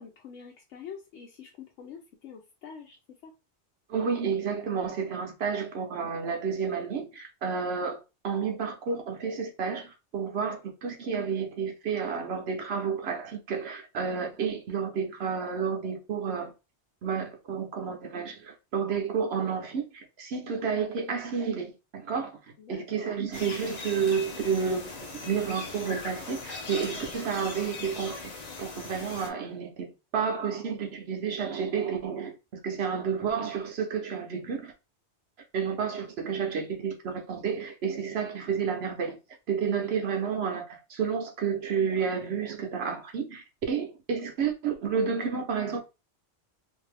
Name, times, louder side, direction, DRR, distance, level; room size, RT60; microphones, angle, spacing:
voice 1, 0.0-3.0 3.2-3.3 22.6-23.1, left 7 dB, 85° left, 0.9 m, -45 dB
voice 2, 3.9-16.5 17.0-22.4 22.7-28.2 28.6-29.9 30.1-34.7 35.5-39.2 39.5-45.8, right 6 dB, 65° right, 0.9 m, -31 dB
sound 1, 23.3-29.3, left 3 dB, 45° left, 0.6 m, -40 dB
2.6 x 2.5 x 3.2 m
omnidirectional pair, 1.2 m